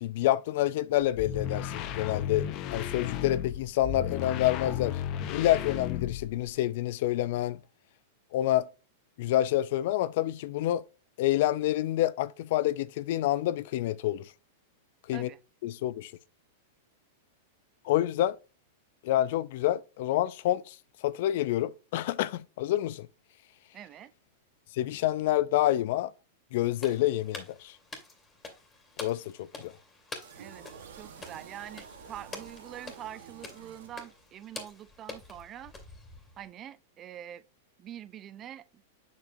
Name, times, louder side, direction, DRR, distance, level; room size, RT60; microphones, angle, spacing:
voice 1, 0.0-5.0 5.3-7.6 8.3-8.7 9.2-10.8 11.2-14.3 15.1-15.3 15.6-16.1 17.8-18.4 19.0-20.7 21.0-23.1 24.7-26.1 26.5-27.7 29.0-29.7, left 14 dB, 60° left, 0.5 m, -28 dB
sound 1, 1.0-6.5, left 10 dB, 40° left, 0.8 m, -34 dB
voice 2, 23.7-24.1 30.4-30.7 30.9-35.7 36.4-37.4 37.8-38.6, right 11 dB, 30° right, 0.5 m, -45 dB
sound 2, 26.7-36.5, left 3 dB, 15° left, 2.2 m, -47 dB
sound 3, 30.2-34.4, right 7 dB, 80° right, 1.3 m, -49 dB
7.3 x 6.1 x 2.7 m
hypercardioid pair, 130°, 0 cm